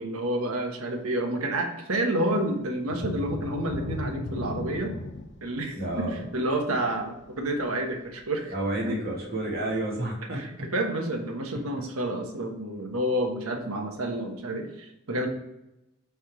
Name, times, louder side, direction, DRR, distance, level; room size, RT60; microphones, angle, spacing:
voice 1, 0.0-4.9 5.4-8.5 8.9-9.0 10.3-14.7 15.1-15.3, right 1 dB, 80° right, 4 dB, 1.2 m, -29 dB
sound 1, 2.8-8.3 8.7-8.9 9.4-9.5, left 2 dB, 50° left, 0.7 m, -37 dB
voice 2, 5.8-6.3 8.5-10.4, right 1 dB, 45° right, -3 dB, 2.1 m, -30 dB
8.4 x 3.6 x 4.8 m, 0.88 s
head